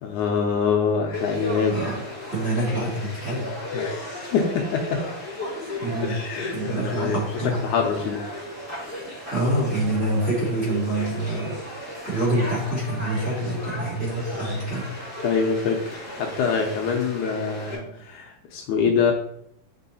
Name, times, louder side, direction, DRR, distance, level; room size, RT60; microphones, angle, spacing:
voice 1, 0.0-1.8 3.7-5.1 6.0-7.2 7.6-8.2 15.2-19.1, left 5 dB, 75° left, 2 dB, 2.0 m, -25 dB
Conversation / Crowd, 1.1-17.7, left 1 dB, 5° right, 1.8 m, -35 dB
voice 2, 1.7-2.0 2.3-3.5 5.8-6.2 6.5-7.7 9.3-14.9, right 1 dB, 25° right, -8 dB, 2.1 m, -26 dB
6.2 x 4.6 x 4.1 m, 0.72 s
omnidirectional pair, 3.7 m